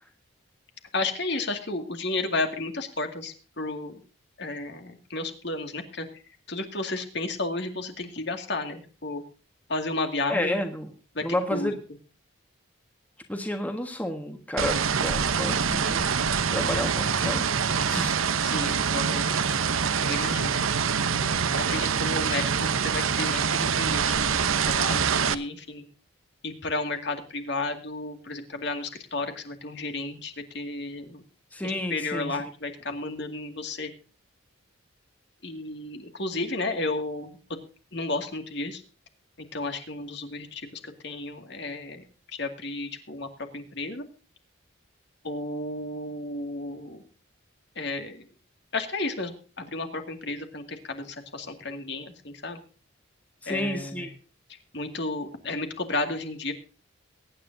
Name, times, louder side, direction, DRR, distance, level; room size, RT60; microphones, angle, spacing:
voice 1, 0.9-4.0 4.4-6.2 6.5-9.2 9.7-10.6 11.1-11.2 11.5-11.7 18.4-19.4 20.0-20.6 21.5-25.8 26.4-31.2 31.6-33.9 35.4-37.6 37.9-38.8 39.5-42.0 42.3-43.3 43.5-44.0 45.2-47.0 47.8-48.3 48.7-49.3 49.6-52.6 53.5-54.1 54.5-56.5, left 2 dB, 55° left, 5 dB, 2.2 m, -33 dB
voice 2, 10.3-10.9 11.2-11.8 13.3-17.5 17.8-18.2 31.5-32.3 53.4-54.1, left 1 dB, 10° left, 4 dB, 1.5 m, -31 dB
sound 1, 14.6-25.3, right 6 dB, 85° right, 0.9 m, -25 dB
22.5 x 10.0 x 2.7 m, 0.39 s
head